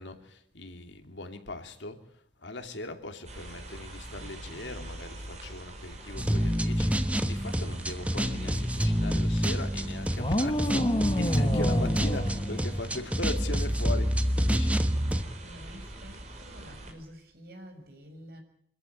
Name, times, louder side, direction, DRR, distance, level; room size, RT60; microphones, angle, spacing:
voice 1, 0.0-14.8, left 2 dB, 85° left, 2.7 m, -40 dB
sound 1, 3.3-16.9, right 1 dB, 40° right, 5.3 m, -44 dB
sound 2, 6.2-15.2, equal, 10° right, 1.1 m, -27 dB
sound 3, 10.2-13.3, left 1 dB, 30° left, 1.5 m, -29 dB
voice 2, 15.4-18.4, equal, 55° right, 6.3 m, -49 dB
25.5 x 14.5 x 9.7 m
head